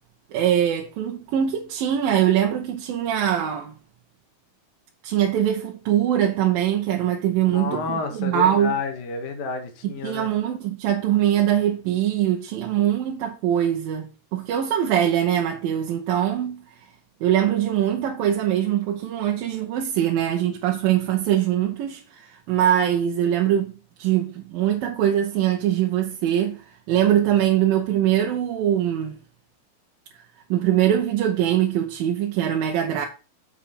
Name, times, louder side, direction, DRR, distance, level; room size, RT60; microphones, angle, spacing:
voice 1, 0.3-3.7 5.0-8.8 9.8-16.6 17.2-23.7 24.0-29.2 30.5-33.1, right 11 dB, 75° right, 2.7 m, -22 dB
voice 2, 7.5-10.3, left 4 dB, 70° left, 3.1 m, -30 dB
7.2 x 6.5 x 5.6 m
omnidirectional pair, 4.4 m